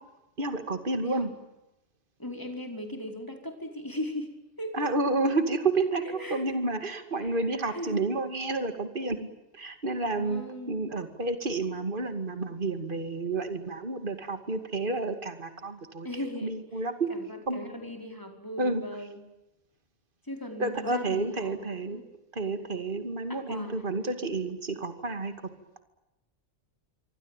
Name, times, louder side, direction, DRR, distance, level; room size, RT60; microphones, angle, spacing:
voice 1, 0.4-1.3 4.7-6.0 6.3-9.3 9.5-10.4 10.7-16.1 16.4-17.1 17.5-17.6 18.6-18.8 20.6-22.0 22.3-25.3, right 3 dB, 45° right, 8 dB, 2.6 m, -30 dB
voice 2, 1.0-1.3 2.2-4.9 6.0-6.6 7.2-8.0 10.2-10.8 16.0-16.5 17.1-19.3 20.2-22.1 22.5-22.6 23.3-24.2, left 1 dB, 15° left, 4 dB, 4.7 m, -38 dB
26.5 x 24.5 x 9.1 m, 0.97 s
omnidirectional pair, 1.3 m